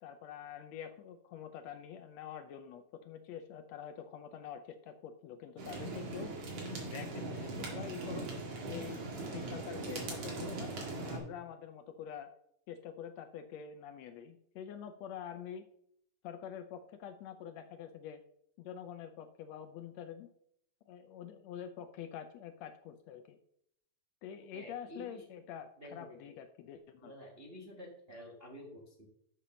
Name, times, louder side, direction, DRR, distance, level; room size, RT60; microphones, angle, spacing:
voice 1, 0.0-6.3 6.8-8.3 8.7-10.7 11.0-12.3 12.7-15.6 16.2-18.2 18.6-20.3 20.9-23.4 24.2-27.1, left 8 dB, 75° left, 9 dB, 1.7 m, -46 dB
sound 1, 5.6-11.2, right 2 dB, 75° right, 3.4 m, -40 dB
voice 2, 24.5-25.3 25.8-26.2 27.0-29.1, equal, 35° right, -2 dB, 0.9 m, -50 dB
6.8 x 5.6 x 6.2 m, 0.71 s
omnidirectional pair, 3.4 m